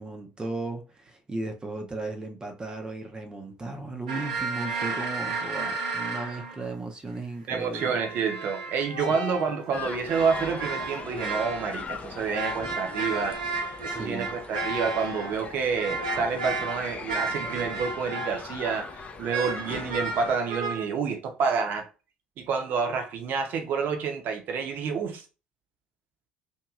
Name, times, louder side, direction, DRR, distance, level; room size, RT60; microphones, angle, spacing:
voice 1, 0.0-8.0 9.1-9.2 13.9-14.3, right 2 dB, 20° right, 0.6 m, -36 dB
sound 1, 4.1-6.6 7.7-9.6 10.0-11.9 12.3-18.5 19.3-20.9, right 3 dB, 80° right, 0.6 m, -33 dB
voice 2, 7.5-13.4 13.8-21.9 22.4-25.2, right 5 dB, 50° right, 0.8 m, -29 dB
sound 2, 9.7-20.4, left 4 dB, 35° left, 0.5 m, -40 dB
2.9 x 2.7 x 2.4 m
figure-of-eight pair, 60°, 4 cm